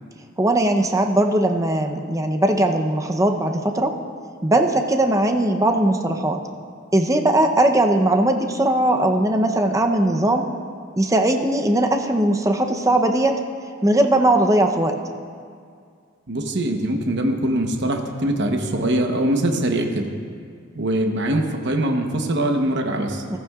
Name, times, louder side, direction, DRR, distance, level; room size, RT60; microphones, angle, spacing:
voice 1, 0.4-3.9 4.4-6.4 6.9-10.4 11.0-13.3 13.8-15.0 23.3-23.4, right 1 dB, 15° right, 4 dB, 0.7 m, -19 dB
voice 2, 16.3-20.1 20.7-23.2, right 1 dB, 60° right, 3 dB, 1.0 m, -22 dB
14.5 x 14.5 x 2.4 m, 2.2 s
head